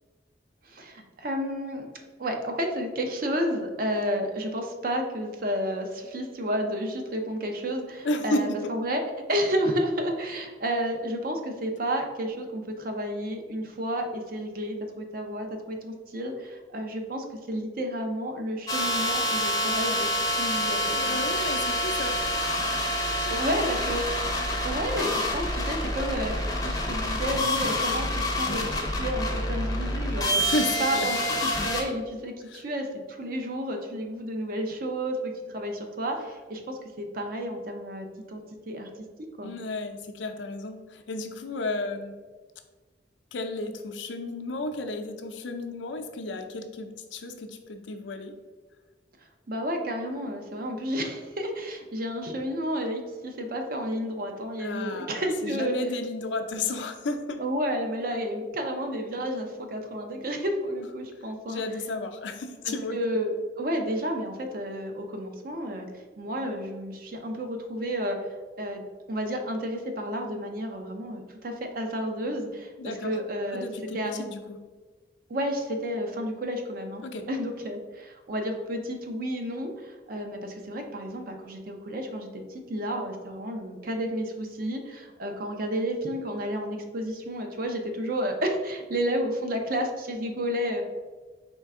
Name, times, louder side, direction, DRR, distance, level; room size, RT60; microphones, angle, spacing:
voice 1, 0.6-9.0 9.3-21.2 23.3-24.0 24.6-30.4 30.8-38.4 38.7-38.9 39.4-39.5 49.5-55.7 57.4-61.6 62.6-65.9 66.2-68.2 68.6-73.7 73.9-74.3 75.3-90.8, equal, 50° right, 4 dB, 0.6 m, -31 dB
voice 2, 8.0-8.7 20.9-22.2 23.2-23.7 30.3-31.1 32.4-32.6 39.4-42.1 43.3-48.3 54.6-57.4 61.5-63.0 72.8-73.1 73.5-74.6 77.0-77.2, left 2 dB, 90° left, 6 dB, 0.5 m, -33 dB
sound 1, 18.7-31.8, left 1 dB, 20° left, 0.6 m, -27 dB
4.5 x 3.3 x 3.6 m, 1.4 s
head